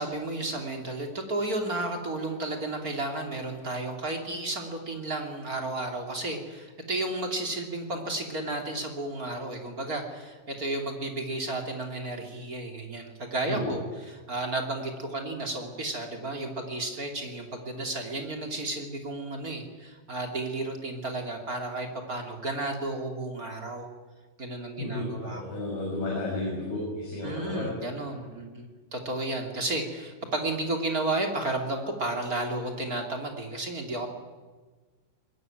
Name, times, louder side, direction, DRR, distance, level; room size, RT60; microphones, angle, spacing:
voice 1, 0.0-23.9 24.4-25.4 27.2-34.1, right 2 dB, 25° right, 3 dB, 2.4 m, -32 dB
voice 2, 13.5-13.8 24.8-27.7, left 2 dB, 55° left, -3 dB, 8.6 m, -32 dB
23.5 x 21.0 x 9.3 m, 1.3 s
omnidirectional pair, 5.2 m